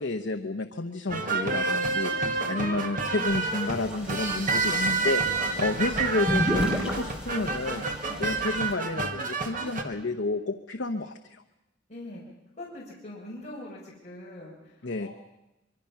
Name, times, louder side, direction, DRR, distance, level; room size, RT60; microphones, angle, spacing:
voice 1, 0.0-7.8 8.2-11.4 14.8-15.1, left 2 dB, 60° left, 5 dB, 0.9 m, -31 dB
sound 1, 1.1-9.8, right 3 dB, 45° right, 1.8 m, -29 dB
voice 2, 2.3-2.9 5.4-5.7 8.0-8.3 11.9-12.2 12.6-15.1, left 1 dB, 35° left, -5 dB, 5.0 m, -43 dB
sound 2, 3.3-8.7, equal, 5° right, 3.8 m, -33 dB
24.5 x 23.5 x 5.9 m, 0.96 s
head